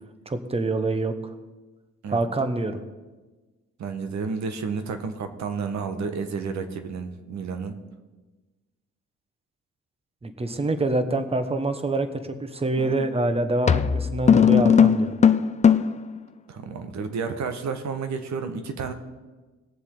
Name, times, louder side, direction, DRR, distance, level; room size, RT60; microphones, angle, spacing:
voice 1, 0.3-1.3 2.1-2.8 10.2-15.1, right 2 dB, 20° right, 9 dB, 1.1 m, -26 dB
voice 2, 3.8-7.8 16.5-18.9, right 5 dB, 65° right, 7 dB, 1.4 m, -31 dB
sound 1, 12.8-13.0 13.7-16.1, left 7 dB, 25° left, 0.4 m, -18 dB
19.5 x 7.2 x 3.8 m, 1.2 s
cardioid pair, 90°, 30 cm